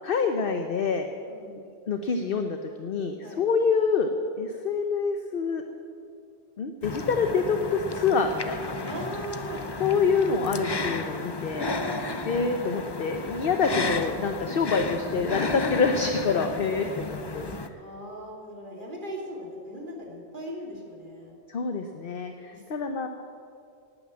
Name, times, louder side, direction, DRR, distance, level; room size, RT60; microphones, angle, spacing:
voice 1, 0.0-1.1 1.9-4.1 4.4-5.6 6.6-8.7 9.8-11.7 12.3-14.8 15.1-17.5 21.5-23.1, left 5 dB, 50° left, 6 dB, 0.9 m, -26 dB
voice 2, 1.3-1.6 3.2-3.5 8.8-9.7 11.5-12.2 14.7-14.8 16.8-16.9 17.8-21.3 22.5-22.8, equal, 40° right, -2 dB, 2.9 m, -38 dB
sound 1, 6.8-17.7, left 3 dB, 25° left, 0.6 m, -33 dB
18.5 x 9.3 x 7.5 m, 2.4 s
omnidirectional pair, 1.3 m